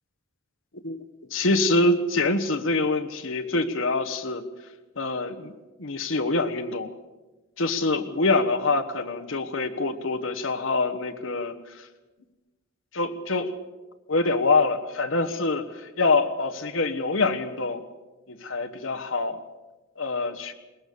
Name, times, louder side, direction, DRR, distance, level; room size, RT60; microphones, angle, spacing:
voice 1, 1.3-4.4 5.0-5.5 5.8-6.9 7.6-11.9 12.9-13.6 14.1-17.8 18.3-19.4 20.0-20.5, left 3 dB, 85° left, 6 dB, 1.4 m, -25 dB
21.5 x 19.5 x 6.9 m, 1.2 s
head